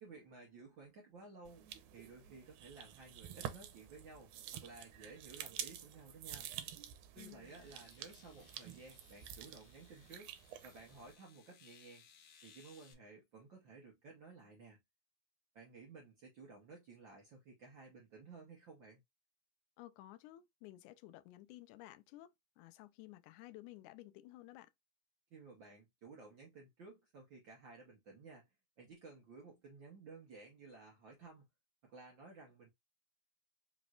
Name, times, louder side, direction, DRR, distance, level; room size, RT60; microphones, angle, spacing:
voice 1, 0.0-6.5 7.1-12.0 12.4-14.8 15.5-19.0 25.3-31.5 31.8-32.7, right 4 dB, 65° right, 1.2 m, -56 dB
sound 1, 1.5-11.2, right 11 dB, 90° right, 2.2 m, -49 dB
voice 2, 7.2-7.6 19.8-24.7, left 16 dB, 85° left, 2.0 m, -55 dB
Eletric Teeth Brush, 7.4-12.9, left 6 dB, 65° left, 1.4 m, -65 dB
5.2 x 3.1 x 2.3 m
omnidirectional pair, 3.5 m